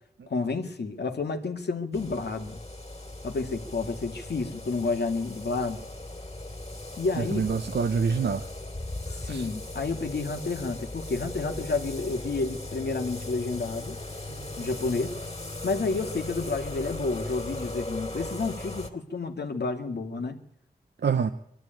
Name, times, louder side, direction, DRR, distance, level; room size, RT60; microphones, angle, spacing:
voice 1, 0.3-2.6 3.2-5.8 7.0-7.5 9.1-14.0 14.6-15.2 15.6-20.4, left 3 dB, 75° left, 5 dB, 2.2 m, -30 dB
sound 1, 1.9-18.9, left 2 dB, 35° left, 3.1 m, -38 dB
voice 2, 7.2-8.4 9.3-9.5 14.3-14.5 21.0-21.3, right 6 dB, 85° right, 8 dB, 0.8 m, -26 dB
22.5 x 12.5 x 9.1 m, 0.79 s
cardioid pair, 50°, 17 cm